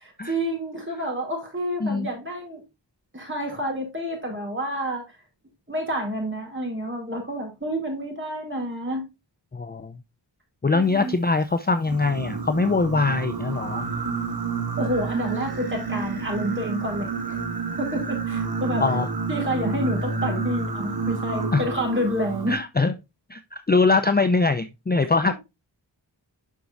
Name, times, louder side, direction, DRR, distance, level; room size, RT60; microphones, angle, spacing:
voice 1, 0.3-2.6 3.1-5.0 5.7-9.0 10.7-11.2 14.8-17.4 17.8-18.9 19.3-22.5 25.0-25.3, equal, 25° right, 4.3 m, -29 dB
voice 2, 9.5-10.0 10.6-13.8 18.8-19.1 21.5-21.6 22.5-22.9 23.3-25.3, left 3 dB, 20° left, 0.5 m, -22 dB
Singing, 11.8-22.5, right 4 dB, 55° right, 1.5 m, -29 dB
8.4 x 6.0 x 2.6 m
wide cardioid pair, 60°, 44 cm